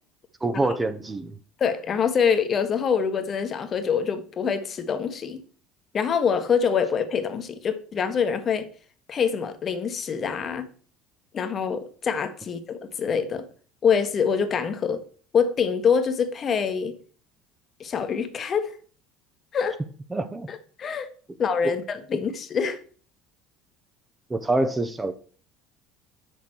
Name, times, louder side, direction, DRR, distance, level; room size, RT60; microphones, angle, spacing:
voice 1, 0.4-1.4 20.1-20.5 21.6-21.7 24.3-25.1, right 2 dB, 15° right, 1.0 m, -25 dB
voice 2, 1.6-5.4 5.9-8.7 9.1-10.7 11.3-13.5 13.8-15.0 15.3-17.0 17.8-18.8 19.5-19.8 20.5-21.1 21.4-22.8, left 6 dB, 40° left, 1.3 m, -25 dB
7.0 x 6.5 x 6.3 m
hypercardioid pair, 80°, 0 cm